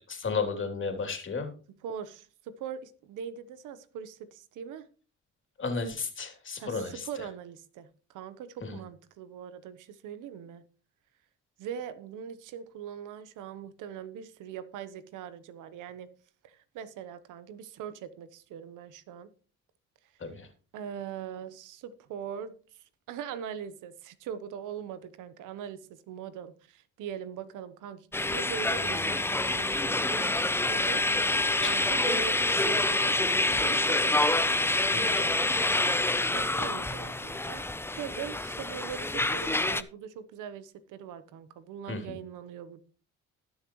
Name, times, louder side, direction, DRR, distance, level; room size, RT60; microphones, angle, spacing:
voice 1, 0.1-1.5 5.6-7.0 8.6-8.8 20.2-20.5 31.6-31.9 34.9-35.2 35.5-35.6 41.9-42.2, left 4 dB, 40° left, 3.0 m, -33 dB
voice 2, 1.8-4.9 6.6-10.6 11.6-16.1 16.4-19.3 20.7-31.0 31.6-34.4 36.3-37.6 37.9-42.8, right 8 dB, 90° right, 1.0 m, -41 dB
sound 1, 28.1-39.8, left 2 dB, 10° left, 0.6 m, -27 dB
19.0 x 6.6 x 3.1 m
cardioid pair, 90°, 30 cm